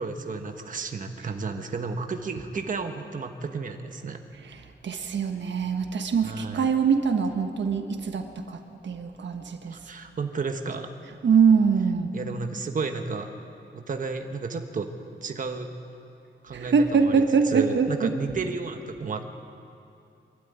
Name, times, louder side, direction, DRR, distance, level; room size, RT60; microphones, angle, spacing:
voice 1, 0.0-4.2 6.2-6.7 9.7-10.9 12.1-13.3 13.7-14.9 15.2-15.7 16.4-19.3, right 4 dB, 45° right, 5 dB, 1.2 m, -32 dB
voice 2, 4.8-9.8 11.2-12.1 16.5-18.1, right 5 dB, 70° right, 6 dB, 1.3 m, -23 dB
24.5 x 12.5 x 9.4 m, 2.7 s
wide cardioid pair, 130°, 19 cm